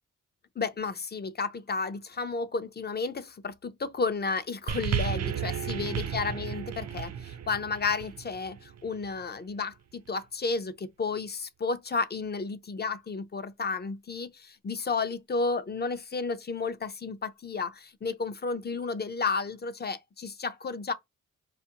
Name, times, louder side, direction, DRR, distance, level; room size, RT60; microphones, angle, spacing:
voice 1, 0.6-20.9, left 4 dB, 30° left, 0.5 m, -32 dB
sound 1, 4.7-9.2 10.1-10.2, right 8 dB, 55° right, 0.5 m, -33 dB
4.9 x 2.4 x 2.8 m
cardioid pair, 70°, 31 cm